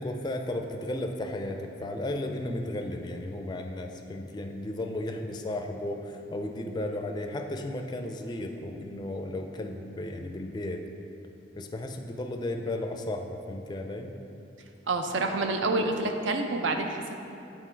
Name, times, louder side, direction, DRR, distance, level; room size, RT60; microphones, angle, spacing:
voice 1, 0.0-10.8 11.6-14.1, left 1 dB, 25° left, 4 dB, 0.4 m, -34 dB
voice 2, 14.9-17.2, right 2 dB, 85° right, 5 dB, 0.6 m, -28 dB
8.2 x 3.8 x 4.4 m, 2.8 s
head